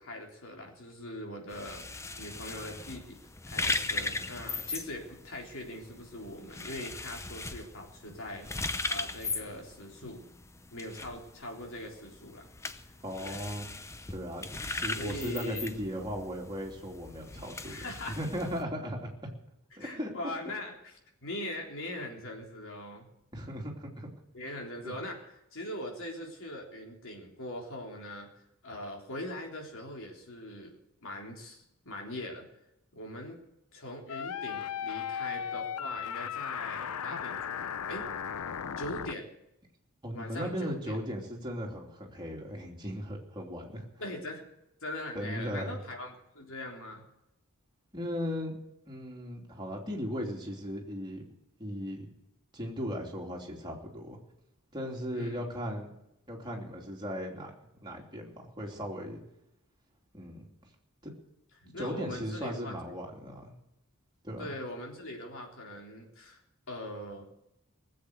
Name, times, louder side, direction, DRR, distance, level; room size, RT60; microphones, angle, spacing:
voice 1, 0.0-1.8 2.2-3.2 3.5-8.5 8.9-10.2 10.7-12.4 12.8-12.9 13.2-13.5 15.0-15.6 17.7-18.2 19.8-20.9 21.2-23.1 24.3-28.3 28.6-32.4 32.9-33.4 33.7-38.1 38.8-39.3 40.1-40.9 44.0-44.5 44.8-47.0 55.1-55.5 61.6-62.7 64.4-66.4 66.7-67.2, left 1 dB, 60° left, 1 dB, 3.6 m, -41 dB
sound 1, 1.5-18.6, left 3 dB, 15° left, 0.6 m, -39 dB
voice 2, 13.0-13.7 14.1-19.1 19.8-20.1 23.3-24.1 24.8-24.9 40.0-43.8 45.1-45.8 47.9-48.6 48.9-51.3 51.6-52.1 52.5-54.2 54.7-55.9 56.3-57.5 57.8-59.2 60.1-60.5 61.0-61.1 61.8-63.5 64.2-64.5, equal, 20° right, -1 dB, 3.0 m, -37 dB
sound 2, 34.1-39.1, left 8 dB, 80° left, 0.6 m, -36 dB
19.5 x 7.8 x 8.2 m, 0.85 s
head